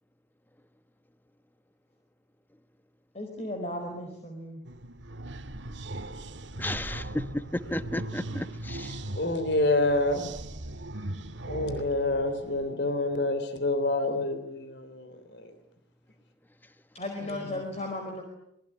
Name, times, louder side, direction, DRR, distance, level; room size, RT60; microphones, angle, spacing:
voice 1, 3.1-4.6 16.9-18.2, left 1 dB, 35° left, 4.7 m, -35 dB
sound 1, 4.7-12.7, right 1 dB, 85° right, 1.9 m, -39 dB
voice 2, 6.6-9.0, left 1 dB, 10° left, 1.2 m, -33 dB
voice 3, 9.2-10.3 11.0-11.1 11.5-15.5 17.2-17.7, left 2 dB, 65° left, 3.5 m, -28 dB
26.5 x 21.5 x 10.0 m
head